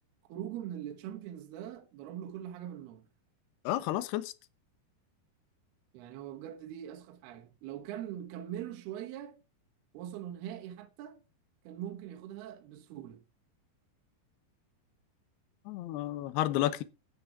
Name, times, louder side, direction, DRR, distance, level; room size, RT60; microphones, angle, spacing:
voice 1, 0.3-3.1 5.9-9.4 9.9-11.2 11.6-13.2, right 11 dB, 70° right, 3.1 m, -42 dB
voice 2, 3.6-4.3 15.7-16.8, left 14 dB, 75° left, 2.9 m, -31 dB
12.0 x 9.5 x 4.7 m
omnidirectional pair, 5.0 m